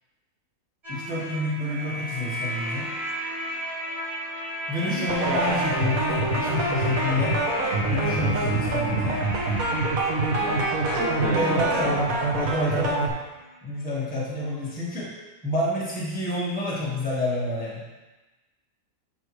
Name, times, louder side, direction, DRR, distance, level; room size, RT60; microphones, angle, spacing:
sound 1, 0.8-13.5, left 1 dB, 45° right, 2.5 m, -34 dB
voice 1, 0.9-2.9 4.7-7.4 7.9-9.2 11.3-12.0 12.4-13.0 13.6-15.1 15.4-17.8, left 1 dB, 5° left, -8 dB, 1.6 m, -28 dB
sound 2, 5.1-13.1, right 2 dB, 70° right, 1.4 m, -25 dB
voice 2, 10.3-12.0, left 1 dB, 45° left, -7 dB, 2.0 m, -32 dB
8.3 x 5.5 x 3.2 m, 1.2 s
omnidirectional pair, 1.5 m